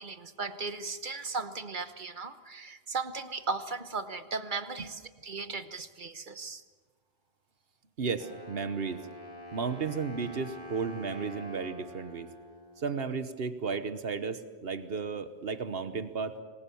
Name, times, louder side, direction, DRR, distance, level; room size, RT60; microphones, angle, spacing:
voice 1, 0.0-6.6, right 4 dB, 50° right, 10 dB, 1.2 m, -37 dB
voice 2, 8.0-9.0 9.5-12.3 12.8-16.3, right 5 dB, 70° right, 11 dB, 1.3 m, -34 dB
Wind instrument woodwind instrument, 8.2-13.1, left 1 dB, 25° left, 7.2 m, -46 dB
26.0 x 20.5 x 7.0 m, 1.5 s
omnidirectional pair, 1.0 m